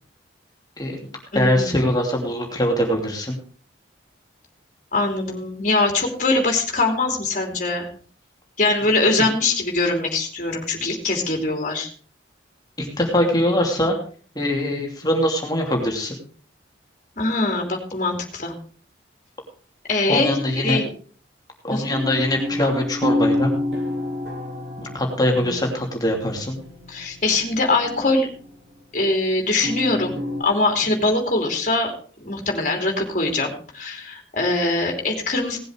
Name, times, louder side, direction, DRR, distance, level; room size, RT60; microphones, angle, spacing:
voice 1, 0.8-3.4 12.8-14.0 14.3-16.2 20.1-20.8 21.6-23.5 24.8-26.6, left 1 dB, 20° left, 1 dB, 2.8 m, -22 dB
voice 2, 1.3-1.7 4.9-7.9 8.6-11.9 17.2-18.5 19.9-20.9 21.7-21.9 25.3-25.6 26.9-28.3 28.9-31.9 32.2-35.6, left 2 dB, 40° left, 2 dB, 3.0 m, -22 dB
sound 1, 21.9-26.0 26.2-28.5 29.6-30.4, left 1 dB, 65° right, 2.8 m, -28 dB
18.5 x 7.8 x 4.7 m, 0.42 s
head